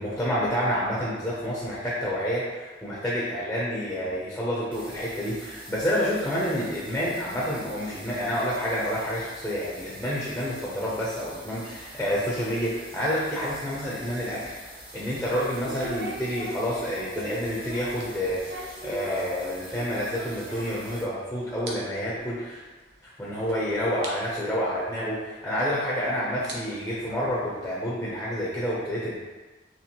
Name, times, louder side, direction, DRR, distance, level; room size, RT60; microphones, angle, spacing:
voice 1, 0.0-22.6 23.2-29.1, equal, 5° left, -7 dB, 0.6 m, -29 dB
sound 1, 4.7-21.0, right 1 dB, 30° right, 0.7 m, -46 dB
sound 2, 13.5-21.2 21.4-21.7 22.0-22.2 22.9-23.0 23.5-23.6 24.0-24.1 25.5-25.6 26.3-27.7, right 1 dB, 65° right, 0.7 m, -40 dB
4.3 x 3.1 x 2.9 m, 1.3 s
head